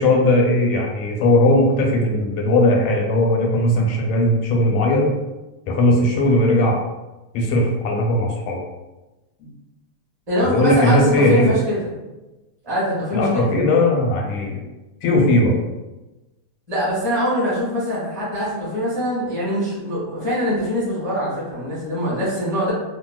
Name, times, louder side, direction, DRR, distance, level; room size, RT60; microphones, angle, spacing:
voice 1, 0.0-5.1 5.7-6.8 7.3-8.6 10.4-11.5 13.1-14.6 15.0-15.6, left 1 dB, 90° left, 0 dB, 1.6 m, -18 dB
voice 2, 10.3-11.9 12.6-13.5 16.7-22.7, equal, 20° right, -10 dB, 1.0 m, -23 dB
3.4 x 2.6 x 2.2 m, 1.1 s
omnidirectional pair, 2.4 m